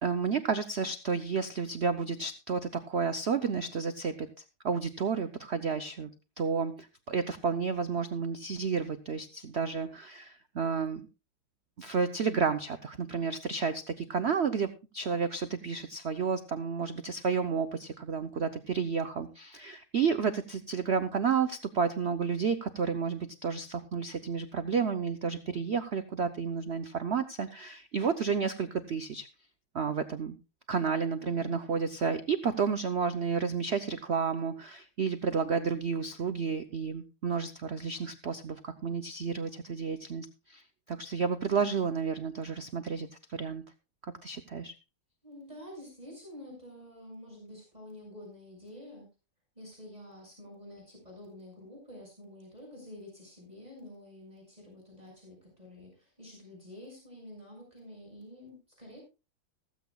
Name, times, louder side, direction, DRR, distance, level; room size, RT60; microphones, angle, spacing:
voice 1, 0.0-4.3 4.6-6.1 6.4-11.1 11.8-29.3 29.7-30.3 30.7-43.6 44.0-44.7, right 5 dB, 55° right, 9 dB, 0.7 m, -31 dB
voice 2, 31.2-31.6 45.2-49.1 49.5-59.0, left 1 dB, 20° right, -1 dB, 6.9 m, -49 dB
15.5 x 15.0 x 2.4 m, 0.30 s
omnidirectional pair, 2.1 m